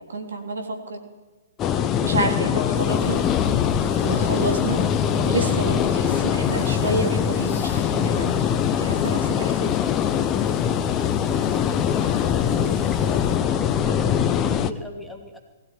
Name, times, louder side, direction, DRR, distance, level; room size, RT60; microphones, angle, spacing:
voice 1, 0.1-1.0 2.0-3.2 4.0-9.7, right 2 dB, 65° right, 4 dB, 3.7 m, -29 dB
sound 1, 1.6-14.7, left 9 dB, 20° left, 1.0 m, -22 dB
sound 2, 2.7-13.4, left 2 dB, 65° left, 1.8 m, -41 dB
voice 2, 11.2-15.4, left 1 dB, 5° left, 2 dB, 2.6 m, -37 dB
21.5 x 15.5 x 9.3 m, 1.3 s
figure-of-eight pair, 120°, 0 cm